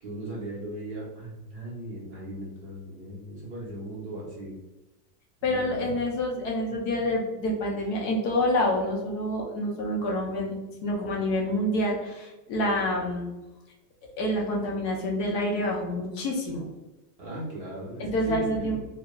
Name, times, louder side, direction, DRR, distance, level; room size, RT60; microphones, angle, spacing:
voice 1, 0.0-4.6 5.4-5.8 6.6-6.7 17.2-18.8, right 1 dB, 25° right, -5 dB, 0.7 m, -38 dB
voice 2, 5.4-10.5 10.8-13.3 14.2-16.7 18.0-18.8, left 1 dB, 35° left, -1 dB, 0.5 m, -27 dB
2.3 x 2.1 x 3.5 m, 1.0 s
supercardioid pair, 160°, 49 cm